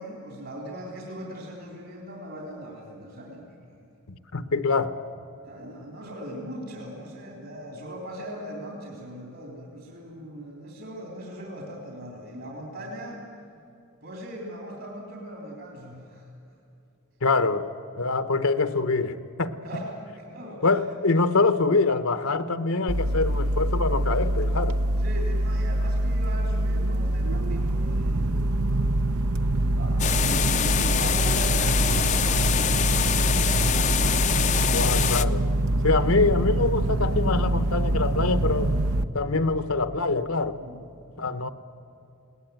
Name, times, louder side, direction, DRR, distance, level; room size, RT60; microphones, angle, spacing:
voice 1, 0.0-3.9 5.4-13.2 14.0-16.3 19.6-20.8 25.0-28.6 29.5-34.9 40.6-40.8, equal, 60° right, 3.4 m, -40 dB
voice 2, 4.1-5.0 17.2-17.7 18.0-19.5 20.6-24.8 34.7-35.5 35.8-38.7 39.1-40.6 41.2-41.5, left 3 dB, 75° left, 0.9 m, -24 dB
sound 1, 22.9-39.0, right 1 dB, 80° right, 0.8 m, -24 dB
sound 2, 30.0-35.2, left 9 dB, 35° left, 0.5 m, -25 dB
21.0 x 18.0 x 9.2 m
head